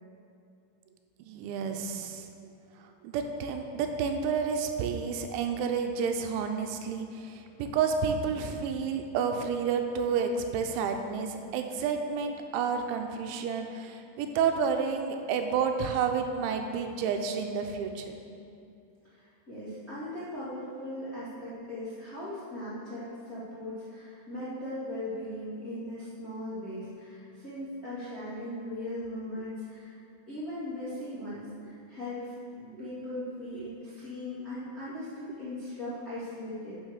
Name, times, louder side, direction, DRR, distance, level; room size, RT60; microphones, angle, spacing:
voice 1, 1.3-2.3 3.0-18.2 32.8-32.9 33.6-33.7, right 6 dB, 85° right, 5 dB, 3.0 m, -30 dB
voice 2, 19.1-29.9 30.3-32.3 32.5-36.7, left 1 dB, 35° left, -11 dB, 1.3 m, -39 dB
9.8 x 6.2 x 6.5 m, 2.6 s
omnidirectional pair, 5.5 m